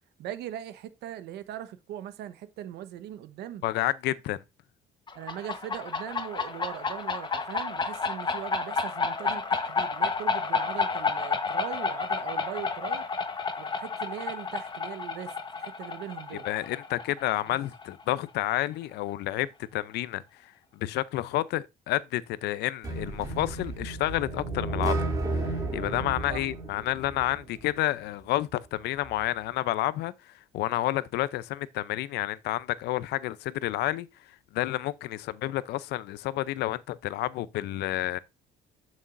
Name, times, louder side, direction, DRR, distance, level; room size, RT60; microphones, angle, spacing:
voice 1, 0.2-3.6 5.1-13.1 13.6-16.5 17.5-17.6 26.3-26.4, right 11 dB, 80° right, 1.1 m, -40 dB
voice 2, 3.6-4.4 16.4-20.2 20.8-25.0 25.3-25.4 25.7-30.1 30.5-34.1 34.5-38.2, left 15 dB, 80° left, 0.6 m, -30 dB
sound 1, 5.1-18.5, left 4 dB, 25° left, 1.1 m, -31 dB
sound 2, 22.8-27.8, right 2 dB, 20° right, 2.9 m, -32 dB
11.0 x 6.3 x 2.6 m
cardioid pair, 110°, 17 cm